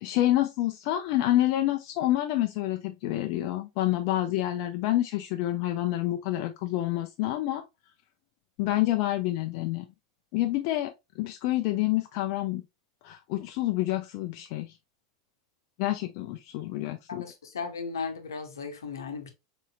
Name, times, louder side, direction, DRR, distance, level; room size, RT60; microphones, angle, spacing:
voice 1, 0.0-7.6 8.6-9.8 10.3-12.6 13.0-14.7 15.8-17.2, left 15 dB, 50° left, 0.4 m, -28 dB
voice 2, 17.1-19.3, left 5 dB, 75° left, 0.8 m, -36 dB
4.1 x 3.7 x 2.3 m
figure-of-eight pair, 85°, 2 cm